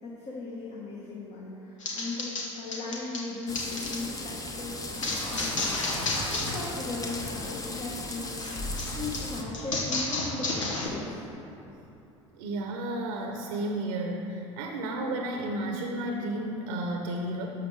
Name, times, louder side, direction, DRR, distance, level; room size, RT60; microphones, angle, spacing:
voice 1, 0.0-11.2, left 3 dB, 40° left, -5 dB, 1.5 m, -38 dB
sound 1, 1.8-4.0 5.0-6.6 6.9-7.3 8.4-10.9, left 2 dB, 80° left, 1.1 m, -32 dB
sound 2, 3.5-9.4, left 2 dB, 20° left, 1.0 m, -37 dB
voice 2, 12.3-17.5, right 1 dB, 70° right, 2 dB, 0.8 m, -32 dB
11.5 x 6.7 x 3.4 m, 3.0 s
figure-of-eight pair, 65°, 16 cm